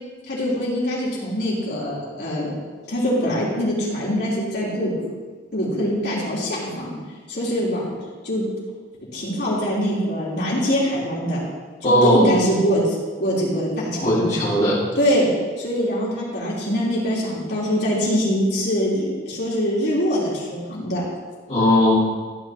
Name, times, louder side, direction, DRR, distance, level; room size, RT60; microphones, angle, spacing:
voice 1, 0.3-2.5 2.9-5.0 5.5-6.9 7.3-8.0 8.2-8.5 9.1-11.4 11.8-14.5 15.0-15.3 15.6-21.0, equal, 60° left, -7 dB, 3.8 m, -23 dB
voice 2, 11.8-12.4 14.0-14.8 21.5-22.0, left 1 dB, 35° left, -10 dB, 2.4 m, -18 dB
15.5 x 10.0 x 3.0 m, 1.5 s
head